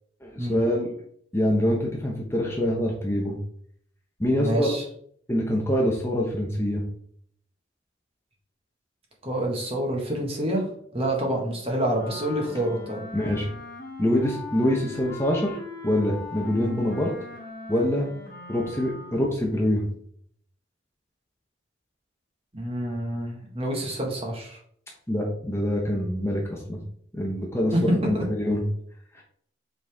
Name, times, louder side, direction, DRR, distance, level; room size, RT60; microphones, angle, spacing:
voice 1, 0.2-0.9 1.3-3.3 4.2-4.8 5.3-6.8 13.1-13.5 14.0-15.6 15.8-17.1 17.7-18.1 18.5-19.9 25.1-26.8 27.1-28.6 29.1-29.2, equal, 15° left, -1 dB, 1.0 m, -25 dB
voice 2, 4.4-4.8 9.2-10.6 10.9-13.0 22.5-24.6 27.7-28.2, right 1 dB, 30° right, 0 dB, 1.7 m, -27 dB
Wind instrument woodwind instrument, 11.9-19.3, left 2 dB, 50° left, 2.0 m, -40 dB
7.9 x 4.1 x 3.6 m, 0.63 s
head